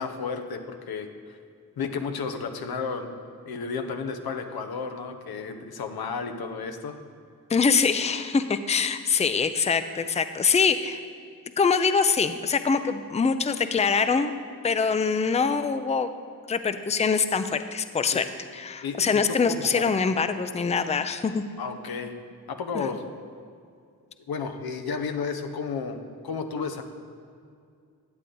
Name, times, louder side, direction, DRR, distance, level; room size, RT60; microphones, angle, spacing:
voice 1, 0.0-1.4 1.8-3.2 3.5-7.0 18.1-18.3 18.8-19.8 21.6-22.1 22.5-23.0 24.3-26.0 26.2-26.8, left 5 dB, 85° left, 6 dB, 0.8 m, -32 dB
voice 2, 7.5-11.0 11.6-14.3 14.6-16.1 16.5-18.2 18.5-21.4 22.7-22.9, left 5 dB, 20° left, 10 dB, 0.4 m, -24 dB
9.7 x 8.2 x 3.8 m, 2.3 s
cardioid pair, 50°, 36 cm